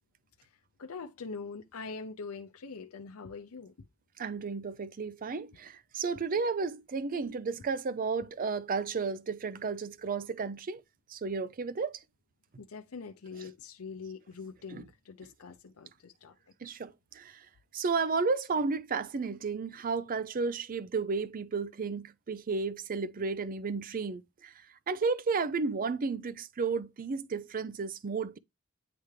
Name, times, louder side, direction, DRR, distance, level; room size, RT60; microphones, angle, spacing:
voice 1, 0.8-3.7 12.6-16.3, left 4 dB, 85° left, 0.6 m, -43 dB
voice 2, 4.2-10.8 11.1-12.0 14.7-14.9 16.6-17.4 17.7-24.5 24.9-28.4, right 4 dB, 40° right, 0.4 m, -33 dB
9.6 x 3.4 x 3.2 m
head